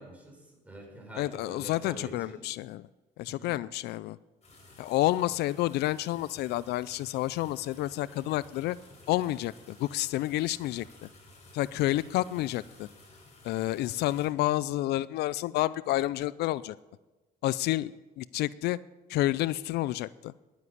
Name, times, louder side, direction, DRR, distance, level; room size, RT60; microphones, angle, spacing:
voice 1, 0.0-2.4 3.2-3.5, right 1 dB, 10° right, 0 dB, 5.1 m, -46 dB
voice 2, 1.2-2.8 3.2-4.2 4.8-8.8 9.1-10.9 11.5-12.9 13.4-16.8 17.4-18.8 19.1-20.3, left 16 dB, 75° left, 19 dB, 0.4 m, -29 dB
sound 1, 4.4-14.3, left 2 dB, 40° left, 5.6 m, -54 dB
11.0 x 9.3 x 9.8 m, 1.2 s
cardioid pair, 110°, 17 cm